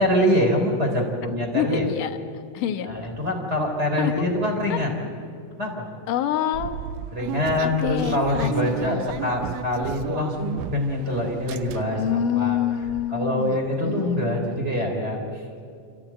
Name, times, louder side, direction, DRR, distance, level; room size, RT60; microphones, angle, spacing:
voice 1, 0.0-1.8 2.9-4.9 5.6-5.9 7.1-12.6 13.1-15.4, left 1 dB, 20° right, 2 dB, 3.4 m, -24 dB
voice 2, 1.5-3.0 4.0-4.3 4.7-4.8 6.1-6.8 7.6-9.1 12.0-13.6 13.8-14.6, left 10 dB, 75° left, 7 dB, 2.5 m, -27 dB
sound 1, 6.5-11.0 11.3-12.1 12.5-12.6 12.8-13.0, right 10 dB, 75° right, 2.1 m, -33 dB
27.5 x 14.5 x 9.0 m, 2.4 s
omnidirectional pair, 4.0 m